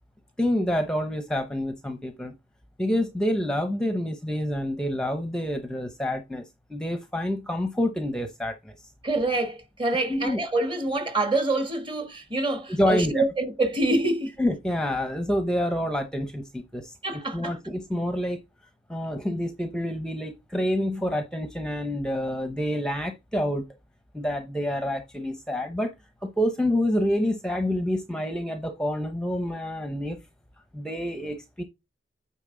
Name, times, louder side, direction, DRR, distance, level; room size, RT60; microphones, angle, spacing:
voice 1, 0.4-2.3 2.8-8.8 10.1-10.4 12.8-13.2 14.4-16.9 17.3-18.4 18.9-23.6 24.1-25.9 26.2-30.2 30.7-31.6, left 1 dB, 5° left, 0.7 m, -27 dB
voice 2, 9.0-14.3 17.0-17.6, right 2 dB, 25° right, 1.3 m, -26 dB
8.9 x 4.3 x 3.7 m
head